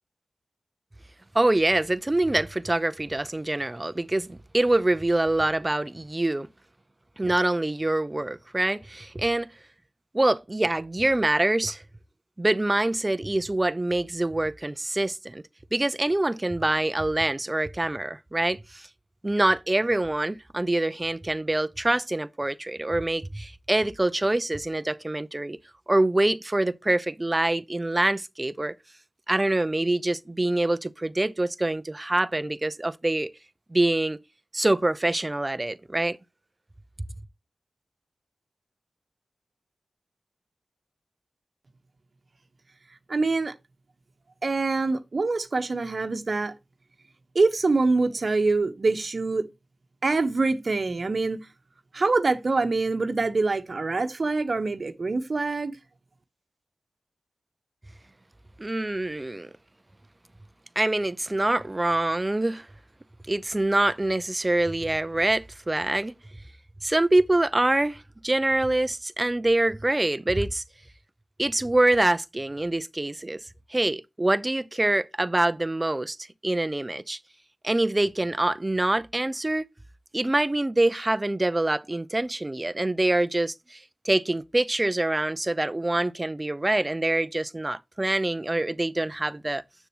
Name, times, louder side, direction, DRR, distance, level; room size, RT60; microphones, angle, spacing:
voice 1, 1.3-6.5 7.2-9.5 10.1-11.8 12.4-15.4 15.7-18.9 19.2-25.6 25.9-28.8 29.3-33.3 33.7-34.2 34.5-36.2 58.6-59.5 60.8-62.7 63.3-66.1 66.8-70.6 71.4-73.4 73.7-76.2 76.4-77.2 77.6-79.7 80.1-89.6, right 2 dB, 25° right, 0.7 m, -25 dB
voice 2, 43.1-43.5 44.4-46.5 47.3-49.4 50.0-51.5 51.9-55.7, right 3 dB, 55° right, 1.1 m, -25 dB
7.4 x 6.8 x 3.0 m
cardioid pair, 50°, 0 cm